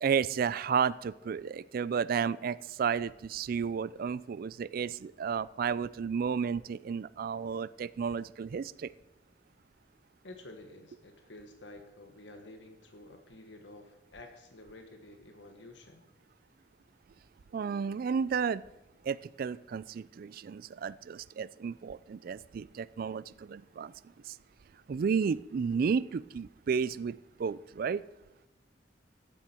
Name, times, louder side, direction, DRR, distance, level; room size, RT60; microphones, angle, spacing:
voice 1, 0.0-8.9 17.5-18.6 19.1-23.9 24.3-24.4 24.9-28.0, right 6 dB, 55° right, 19 dB, 0.3 m, -32 dB
voice 2, 10.2-16.0, left 2 dB, 80° left, 5 dB, 1.3 m, -51 dB
14.5 x 9.9 x 4.4 m, 1.0 s
head